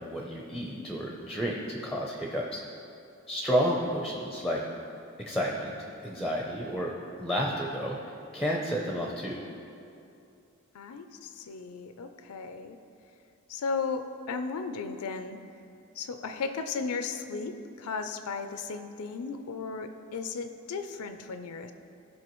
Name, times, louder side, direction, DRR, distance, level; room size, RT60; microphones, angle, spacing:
voice 1, 0.0-2.6 3.3-4.6 5.3-5.7 6.0-6.9 7.2-8.0 8.3-9.4, equal, ahead, -1 dB, 0.6 m, -31 dB
voice 2, 10.7-12.8 13.5-15.4 16.0-21.7, left 4 dB, 85° left, 8 dB, 0.5 m, -35 dB
14.5 x 5.5 x 3.1 m, 2.6 s
head